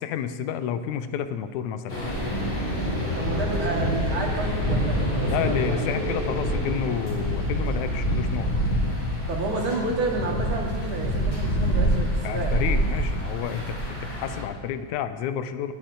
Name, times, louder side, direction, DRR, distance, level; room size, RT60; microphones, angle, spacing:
voice 1, 0.0-2.2 5.3-8.5 12.2-15.7, left 9 dB, 90° left, 11 dB, 2.1 m, -30 dB
sound 1, 1.9-14.4, equal, 45° left, 4.0 m, -26 dB
voice 2, 3.2-5.9 9.3-12.5, right 3 dB, 45° right, -2 dB, 2.7 m, -30 dB
20.0 x 8.6 x 3.8 m, 1.5 s
omnidirectional pair, 3.3 m